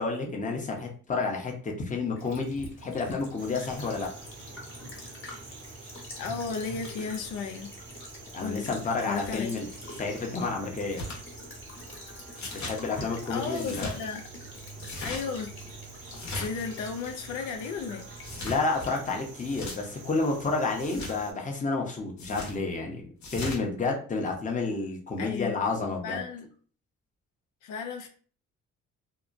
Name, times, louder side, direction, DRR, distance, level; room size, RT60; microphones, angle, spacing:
voice 1, 0.0-4.1 8.3-9.7 10.0-11.1 12.6-13.9 18.4-23.1 23.3-26.2, left 3 dB, 25° left, 1 dB, 0.7 m, -30 dB
Child speech kid speaking / Bird vocalization bird call bird song / Stream, 2.2-19.2, equal, 45° left, 1.1 m, -46 dB
sound 1, 3.4-21.3, right 3 dB, 80° right, 0.9 m, -48 dB
voice 2, 6.1-7.7 8.4-8.7 9.1-9.5 13.0-14.2 15.0-15.5 16.3-18.1 25.2-26.5 27.6-28.1, left 5 dB, 85° left, 5 dB, 0.5 m, -34 dB
sound 2, 10.9-11.2 12.4-12.8 13.5-14.0 14.8-15.2 16.1-16.7 18.2-18.6 19.4-19.8 20.8-21.1 22.2-22.6 23.2-23.6, left 1 dB, 65° left, 1.0 m, -37 dB
2.8 x 2.1 x 2.4 m, 0.44 s
cardioid pair, 90°, 30 cm